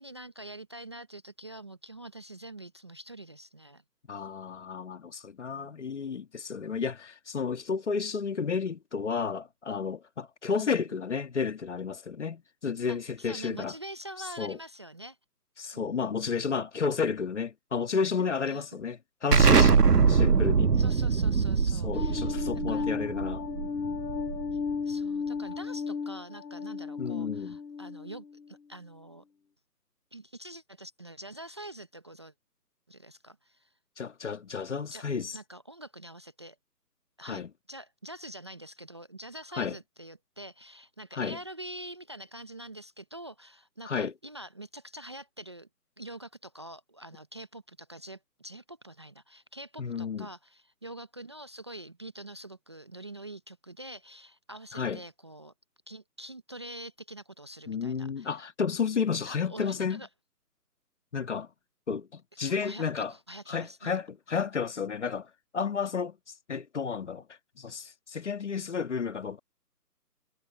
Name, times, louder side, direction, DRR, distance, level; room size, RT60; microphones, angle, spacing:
voice 1, 0.0-3.8 5.5-5.7 10.5-10.8 12.9-15.2 15.7-16.1 18.5-18.8 19.8-20.2 20.8-22.4 22.7-22.9 24.5-24.6 24.9-29.2 30.1-32.3 32.9-33.7 34.9-36.6 37.2-45.7 46.0-55.5 55.9-58.4 59.2-60.1 62.4-63.9, right 1 dB, 15° right, 0.8 m, -45 dB
voice 2, 4.1-13.8 14.2-14.6 15.6-19.8 20.1-20.7 21.7-23.5 27.0-27.6 34.0-35.4 37.2-37.5 39.6-39.8 41.1-41.4 43.8-44.1 49.8-50.3 54.7-55.0 57.7-60.0 61.1-61.5 61.9-63.1 63.5-66.2 66.5-67.2 67.6-69.4, left 5 dB, 45° left, 2.0 m, -32 dB
Explosion, 19.3-24.7, right 5 dB, 70° right, 1.5 m, -23 dB
sound 1, 21.9-28.5, left 5 dB, 75° left, 0.9 m, -34 dB
figure-of-eight pair, 160°, 49 cm